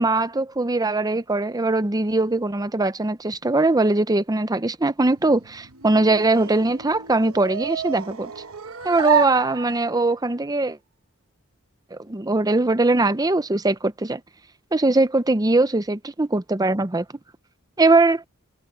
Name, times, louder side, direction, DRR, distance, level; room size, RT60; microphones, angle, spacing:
voice 1, 0.0-8.3 8.8-10.8 11.9-14.2 14.7-17.0 17.8-18.2, right 2 dB, 20° right, 0.7 m, -21 dB
sound 1, 5.1-10.1, right 8 dB, 85° right, 1.2 m, -30 dB
head